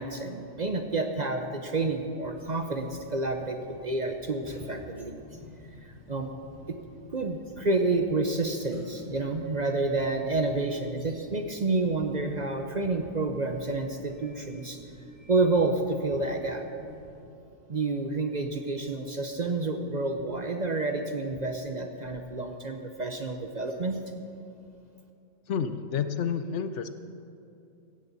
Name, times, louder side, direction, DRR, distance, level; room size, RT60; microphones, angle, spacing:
voice 1, 0.0-5.2 5.8-6.3 6.7-6.8 7.1-14.8 15.3-16.6 17.7-24.0, right 3 dB, 40° right, 5 dB, 0.8 m, -29 dB
sound 1, 2.3-17.2, left 1 dB, 20° right, 4.3 m, -52 dB
voice 2, 25.5-26.9, left 7 dB, 65° left, 11 dB, 0.9 m, -29 dB
16.0 x 15.0 x 4.1 m, 2.7 s
omnidirectional pair, 1.4 m